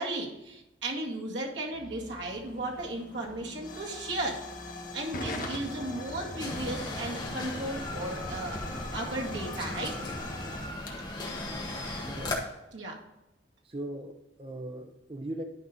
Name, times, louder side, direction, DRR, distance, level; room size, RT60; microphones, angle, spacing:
voice 1, 0.0-4.4 4.9-8.6 8.9-10.0 12.7-13.0, right 2 dB, 75° right, -2 dB, 1.9 m, -35 dB
sound 1, 1.7-11.7, equal, ahead, 1.2 m, -49 dB
Hiss / Fire / Tick, 2.0-12.4, left 2 dB, 45° left, 1.4 m, -42 dB
sound 2, 6.4-12.4, left 2 dB, 25° left, 1.6 m, -37 dB
voice 2, 12.1-12.4 13.6-15.4, right 1 dB, 30° right, 5 dB, 0.7 m, -39 dB
11.5 x 4.9 x 4.0 m, 0.94 s
head